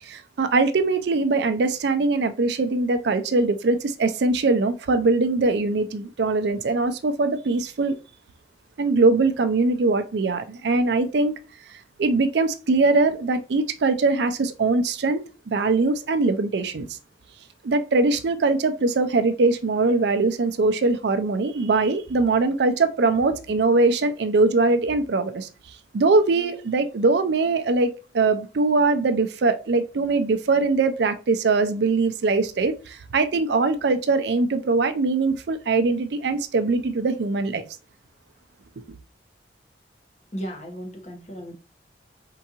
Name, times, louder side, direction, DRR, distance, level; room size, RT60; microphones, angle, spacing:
voice 1, 0.0-7.9 8.8-11.3 12.0-16.9 17.6-25.5 25.9-37.6, right 3 dB, 65° right, 0.4 m, -22 dB
voice 2, 40.3-41.5, equal, 35° left, 1.1 m, -35 dB
4.5 x 3.7 x 2.9 m
head